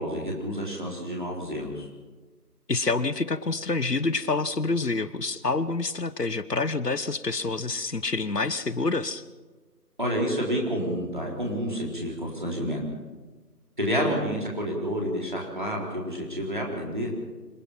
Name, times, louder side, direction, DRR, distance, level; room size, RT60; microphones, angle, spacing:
voice 1, 0.0-1.9 10.0-12.8 13.8-17.1, equal, 30° right, -2 dB, 3.9 m, -29 dB
voice 2, 2.7-9.2, left 3 dB, 75° left, 15 dB, 1.2 m, -27 dB
26.0 x 18.5 x 5.8 m, 1.3 s
figure-of-eight pair, 175°, 49 cm